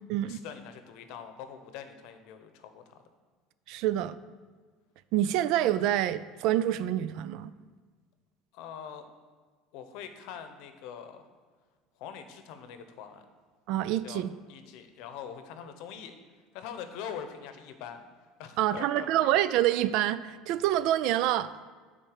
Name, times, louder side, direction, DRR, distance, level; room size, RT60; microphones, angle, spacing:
voice 1, 0.2-3.0 8.5-9.1 9.7-11.3 12.0-13.2 14.0-14.2 14.5-16.1 16.5-18.0 18.4-19.1, left 8 dB, 65° left, 8 dB, 0.8 m, -43 dB
voice 2, 3.7-4.2 5.1-7.5 13.7-14.3 18.6-21.5, right 12 dB, 60° right, 15 dB, 0.3 m, -27 dB
9.0 x 4.2 x 6.5 m, 1.5 s
cardioid pair, 155°, 0 cm